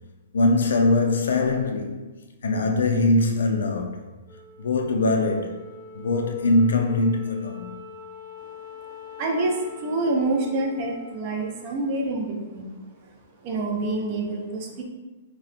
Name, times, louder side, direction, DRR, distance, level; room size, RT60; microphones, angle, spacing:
voice 1, 0.3-2.1 2.4-4.1 4.6-5.7 5.9-7.7, left 2 dB, 90° left, 0.4 m, -22 dB
Wind instrument woodwind instrument, 4.2-12.8, left 3 dB, 20° left, 0.6 m, -44 dB
voice 2, 8.9-13.1 13.4-14.8, right 2 dB, 25° right, 0.3 m, -27 dB
2.8 x 2.0 x 2.4 m
hypercardioid pair, 180°, 0 cm